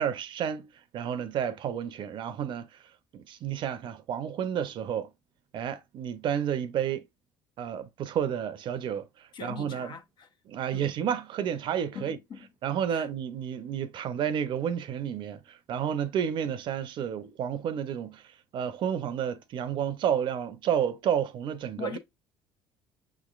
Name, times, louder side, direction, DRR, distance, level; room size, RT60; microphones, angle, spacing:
voice 1, 0.0-2.7 3.1-5.1 5.5-7.0 7.6-10.0 10.5-12.2 12.6-18.2 18.5-22.0, right 9 dB, 55° right, 0.6 m, -31 dB
voice 2, 9.3-10.3 10.7-10.9 11.9-12.5 12.9-13.1 21.8-22.0, left 7 dB, 55° left, 0.9 m, -41 dB
6.1 x 3.1 x 2.4 m
supercardioid pair, 80°, 10 cm